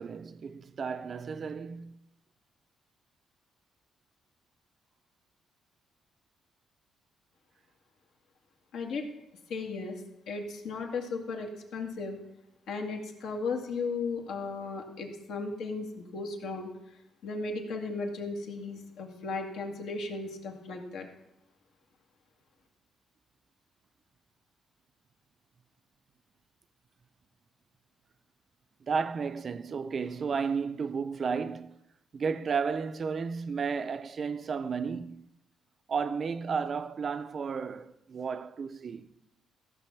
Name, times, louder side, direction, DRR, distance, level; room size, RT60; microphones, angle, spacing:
voice 1, 0.0-2.0 28.9-31.8 32.1-35.3 35.9-39.1, right 5 dB, 40° right, 0.4 m, -33 dB
voice 2, 8.7-9.1 9.5-10.0 10.3-12.2 12.7-16.7 17.2-21.1, left 4 dB, 75° left, 1.9 m, -35 dB
14.5 x 6.0 x 5.9 m
cardioid pair, 135°, 0 cm